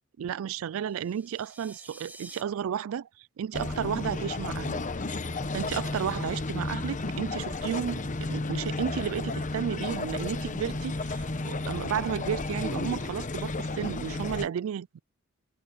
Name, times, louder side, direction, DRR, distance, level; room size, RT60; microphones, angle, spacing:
voice 1, 0.2-4.8 5.5-15.0, right 8 dB, 70° right, 0.3 m, -33 dB
sound 1, 0.8-2.4, right 2 dB, 10° right, 0.9 m, -49 dB
sound 2, 3.5-14.5, left 2 dB, 35° left, 1.0 m, -33 dB
head